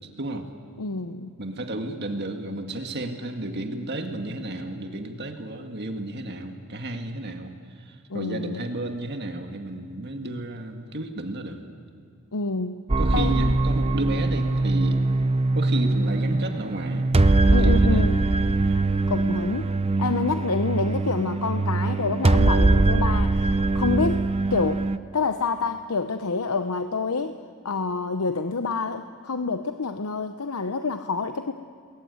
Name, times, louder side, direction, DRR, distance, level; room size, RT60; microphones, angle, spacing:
voice 1, 0.0-0.5 1.4-11.7 13.0-15.0 15.5-17.1 17.6-18.1, right 2 dB, 50° right, 5 dB, 1.9 m, -32 dB
voice 2, 0.8-1.3 8.1-8.6 12.3-12.8 13.1-13.5 17.5-18.4 19.1-19.7 20.0-24.9 25.1-27.4 27.6-31.5, left 4 dB, 90° left, 8 dB, 0.8 m, -27 dB
sound 1, 12.9-25.0, right 2 dB, 25° right, 0.7 m, -22 dB
30.0 x 21.0 x 9.5 m, 2.3 s
head